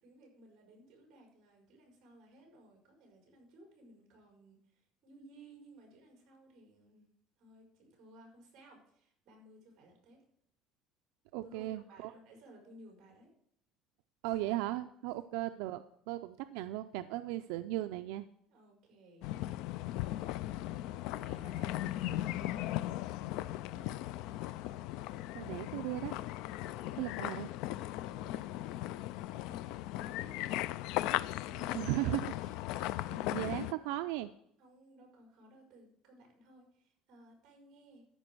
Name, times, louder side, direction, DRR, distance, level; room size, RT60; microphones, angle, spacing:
voice 1, 0.0-7.1 7.4-10.2 11.4-13.3 14.2-14.3 18.5-20.3 20.8-24.3 26.8-27.3 27.8-28.5 28.9-30.5 31.4-31.9 32.4-32.5 33.0-33.4 33.6-34.0 34.6-38.0, right 1 dB, 40° right, 0 dB, 4.9 m, -58 dB
voice 2, 11.3-12.1 14.2-18.3 25.3-26.1 27.0-27.5 31.7-32.2 32.7-33.0 33.3-34.3, right 15 dB, 85° right, 9 dB, 0.4 m, -37 dB
sound 1, 19.2-33.7, left 15 dB, 60° left, 0.3 m, -37 dB
13.5 x 5.3 x 6.2 m, 0.70 s
cardioid pair, 170°, 0 cm